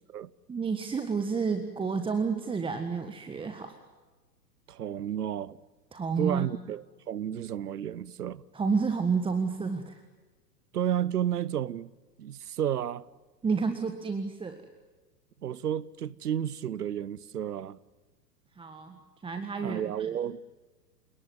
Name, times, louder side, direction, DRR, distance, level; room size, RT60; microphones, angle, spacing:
voice 1, 0.5-3.8 5.9-6.5 8.5-10.0 13.4-14.6 18.6-20.1, right 5 dB, 10° right, 1.6 m, -30 dB
voice 2, 4.7-5.6 6.2-8.4 10.7-11.9 12.2-13.1 15.4-17.8 19.6-20.4, right 10 dB, 65° right, 1.1 m, -32 dB
30.0 x 19.0 x 9.4 m
figure-of-eight pair, 105°, 49 cm